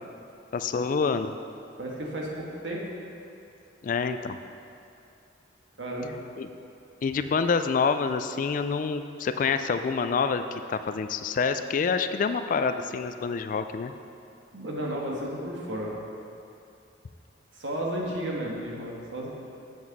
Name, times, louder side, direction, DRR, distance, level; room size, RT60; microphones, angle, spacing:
voice 1, 0.5-1.3 3.8-4.4 6.4-6.5 7.0-13.9, left 5 dB, 45° left, 9 dB, 0.3 m, -27 dB
voice 2, 1.8-2.9 5.8-6.1 14.5-16.0 17.5-19.3, right 1 dB, 85° right, -2 dB, 1.4 m, -33 dB
7.6 x 7.3 x 4.1 m, 2.6 s
head